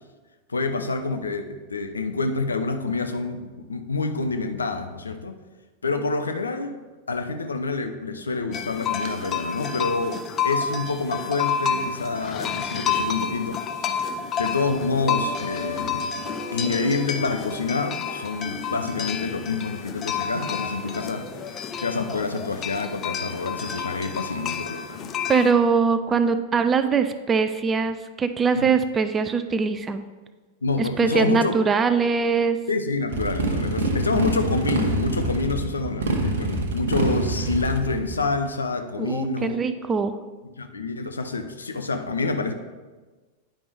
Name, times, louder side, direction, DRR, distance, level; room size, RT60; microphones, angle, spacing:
voice 1, 0.5-5.4 5.8-6.8 7.1-14.0 14.4-16.1 16.5-25.1 28.6-28.7 30.6-31.5 32.7-39.6 40.6-42.5, left 3 dB, 75° left, 7 dB, 0.5 m, -27 dB
sound 1, 8.5-25.5, left 6 dB, 30° left, 0.5 m, -30 dB
sound 2, 15.0-21.0, left 3 dB, 55° left, 2.0 m, -38 dB
voice 2, 25.3-30.0 30.8-32.6 39.0-40.2, right 5 dB, 20° right, 10 dB, 0.4 m, -22 dB
Motorcycle, 33.1-38.2, right 2 dB, 65° right, 0.9 m, -26 dB
9.9 x 5.1 x 3.4 m, 1.3 s
figure-of-eight pair, 90°, 0 cm